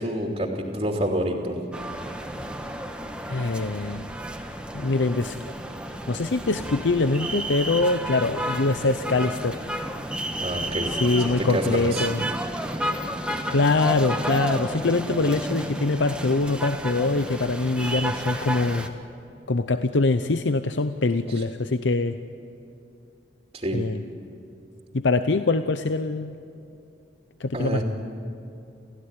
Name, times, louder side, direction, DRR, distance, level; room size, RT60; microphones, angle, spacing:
voice 1, 0.0-1.6 10.4-10.9 11.5-12.1 23.5-23.8 27.5-27.8, right 1 dB, 35° right, 0 dB, 2.7 m, -27 dB
sound 1, 1.7-18.9, right 1 dB, 5° right, 1.5 m, -32 dB
voice 2, 3.3-4.0 4.7-5.4 6.1-9.6 10.9-12.2 13.5-18.9 19.5-22.2 23.7-24.0 24.9-26.3 27.4-27.8, left 3 dB, 90° left, 10 dB, 0.8 m, -23 dB
29.0 x 15.5 x 9.8 m, 2.6 s
head